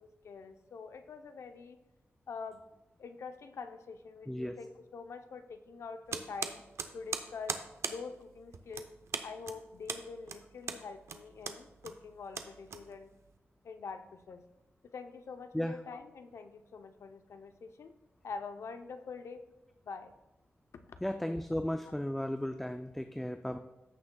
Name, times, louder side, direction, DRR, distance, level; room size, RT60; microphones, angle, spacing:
voice 1, 0.0-1.8 2.3-2.7 3.0-6.6 6.9-7.6 7.9-8.9 9.2-13.1 13.6-14.4 14.8-17.9 18.2-19.4 19.8-20.1, left 5 dB, 85° left, 8 dB, 0.6 m, -45 dB
sound 1, 6.1-13.3, right 5 dB, 80° right, 0.6 m, -40 dB
voice 2, 21.0-23.6, left 1 dB, 5° left, 6 dB, 0.3 m, -35 dB
14.5 x 6.3 x 2.2 m, 1.0 s
wide cardioid pair, 160°, 5 cm